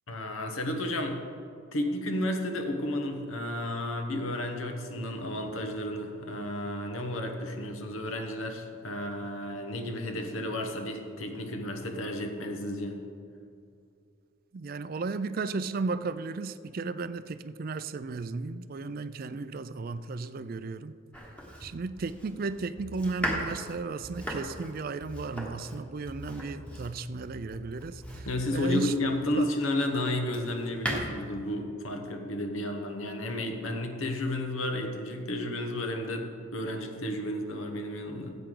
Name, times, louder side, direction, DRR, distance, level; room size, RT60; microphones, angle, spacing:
voice 1, 0.1-1.2 1.7-13.0 28.2-38.4, left 1 dB, 80° left, 4 dB, 1.1 m, -32 dB
voice 2, 14.5-20.9 21.6-28.3 28.5-28.9 29.4-29.5, right 4 dB, 45° right, 13 dB, 0.4 m, -34 dB
Domestic sounds home sounds, 21.1-29.3 29.9-31.0, right 1 dB, 5° left, 1.2 m, -38 dB
14.5 x 8.1 x 3.8 m, 2.4 s
head